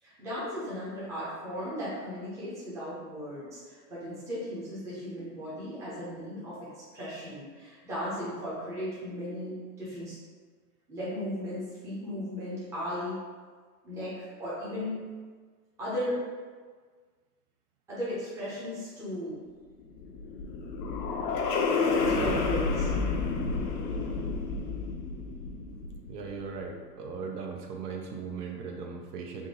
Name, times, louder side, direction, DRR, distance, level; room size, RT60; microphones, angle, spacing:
voice 1, 0.0-10.2 10.9-13.2 13.8-15.0 15.8-16.3 17.9-19.5 21.9-22.9, equal, 5° right, -9 dB, 0.6 m, -36 dB
sound 1, 19.8-26.3, left 4 dB, 70° left, 0.7 m, -30 dB
voice 2, 22.2-22.5 26.1-29.5, right 5 dB, 65° right, 2 dB, 0.8 m, -38 dB
3.6 x 2.6 x 4.0 m, 1.5 s
supercardioid pair, 155°, 49 cm